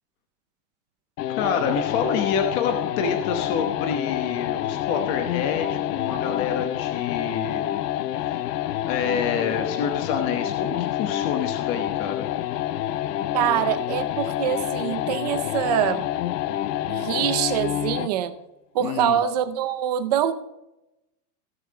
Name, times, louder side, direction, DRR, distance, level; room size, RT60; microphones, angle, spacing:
sound 1, 1.2-18.2, left 12 dB, 85° left, 0.7 m, -28 dB
voice 1, 1.3-7.6 8.1-12.3 18.8-19.2, left 6 dB, 30° left, 5 dB, 1.1 m, -28 dB
voice 2, 13.3-16.0 16.9-18.3 18.7-20.3, right 10 dB, 25° right, 10 dB, 0.5 m, -24 dB
17.0 x 5.8 x 4.2 m, 0.90 s
supercardioid pair, 180°, 47 cm